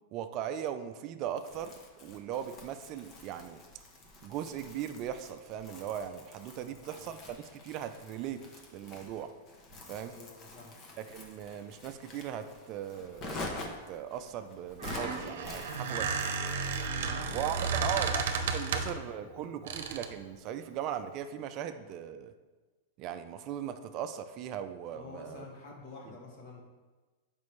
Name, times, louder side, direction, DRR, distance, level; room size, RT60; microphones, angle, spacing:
voice 1, 0.1-3.6 4.2-8.4 8.7-9.3 9.9-10.2 11.0-13.5 13.9-16.2 17.3-22.3 23.0-25.4, right 9 dB, 40° right, 9 dB, 0.4 m, -38 dB
Crumpling crinkling, 1.4-17.2, left 2 dB, 30° left, 1.0 m, -47 dB
voice 2, 6.6-7.1 10.0-10.8 16.9-18.3 18.6-18.9 19.2-19.6 24.9-26.6, left 3 dB, 50° left, -2 dB, 1.8 m, -49 dB
Squeak, 14.7-19.1 19.7-20.2, right 5 dB, 75° right, 0.8 m, -33 dB
7.0 x 5.1 x 3.2 m, 1.3 s
hypercardioid pair, 135°, 0 cm